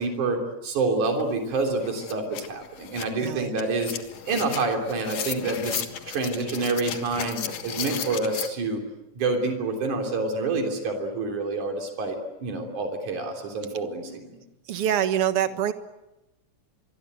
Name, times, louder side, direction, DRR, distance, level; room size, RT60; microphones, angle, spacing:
voice 1, 0.0-4.0 4.3-8.8 9.2-14.4, right 3 dB, 80° right, 3 dB, 4.7 m, -28 dB
sound 1, 1.2-1.3 1.6-8.5, left 8 dB, 65° left, 2.7 m, -35 dB
voice 2, 3.1-3.5 14.7-15.7, right 10 dB, 55° right, 10 dB, 2.1 m, -25 dB
26.5 x 22.0 x 9.3 m, 0.98 s
omnidirectional pair, 3.4 m